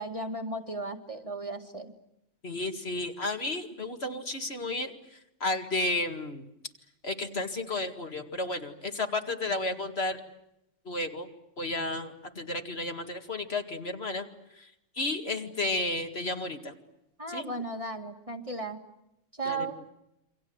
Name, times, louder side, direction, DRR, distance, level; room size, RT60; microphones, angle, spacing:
voice 1, 0.0-1.9 17.2-18.8 19.4-19.7, right 2 dB, 30° right, 4 dB, 2.1 m, -35 dB
voice 2, 2.4-6.4 7.0-10.2 10.8-11.3 11.6-14.3 14.5-16.7 17.3-17.5 19.5-19.7, left 2 dB, 60° left, 5 dB, 2.4 m, -33 dB
28.0 x 25.0 x 8.0 m, 0.85 s
omnidirectional pair, 1.2 m